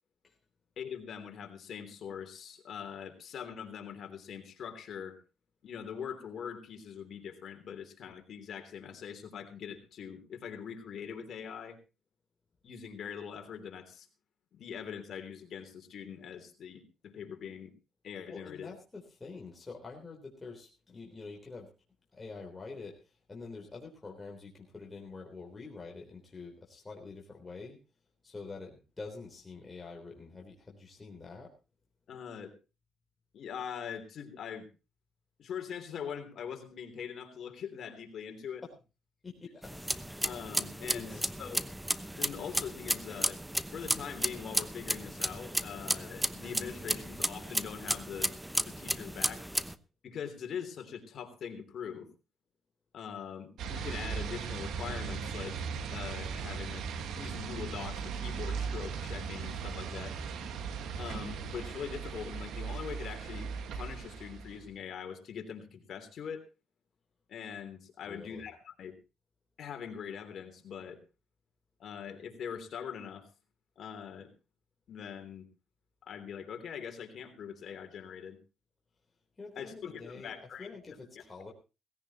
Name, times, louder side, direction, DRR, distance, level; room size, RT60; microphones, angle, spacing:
voice 1, 0.8-5.2 5.6-11.8 12.6-14.1 14.5-17.7 18.0-18.7 32.1-32.5 33.3-34.7 35.4-38.6 40.2-41.6 42.2-43.4 43.7-48.3 48.6-49.4 50.0-52.1 52.9-55.6 55.9-56.8 57.2-60.2 61.0-66.4 67.3-69.0 69.6-71.0 71.8-73.3 73.8-74.3 74.9-75.5 76.1-78.4 79.5-80.8, left 7 dB, 60° left, 6 dB, 3.2 m, -42 dB
voice 2, 18.3-21.7 22.1-27.8 28.2-31.5 38.6-38.7 39.2-40.0 40.9-41.2 68.0-68.5 79.4-80.3 80.6-81.5, left 4 dB, 25° left, -1 dB, 3.7 m, -46 dB
sound 1, 39.6-49.7, right 1 dB, 5° right, 0.8 m, -34 dB
sound 2, 53.6-64.7, right 6 dB, 80° right, 1.7 m, -38 dB
17.5 x 16.5 x 3.0 m, 0.30 s
cardioid pair, 90°, 0 cm